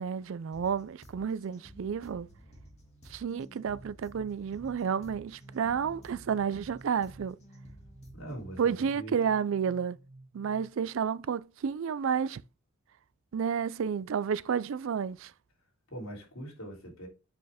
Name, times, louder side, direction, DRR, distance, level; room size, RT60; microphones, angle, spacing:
voice 1, 0.0-2.3 3.1-7.4 8.6-10.0 10.3-12.4 13.3-15.3, right 7 dB, 60° right, 0.3 m, -31 dB
sound 1, 0.5-8.5, equal, 30° left, 2.1 m, -54 dB
sound 2, 3.4-11.0, right 2 dB, 40° right, 0.8 m, -54 dB
voice 2, 8.1-9.1 15.9-17.1, right 1 dB, 70° left, 3.2 m, -42 dB
7.7 x 5.6 x 3.5 m
head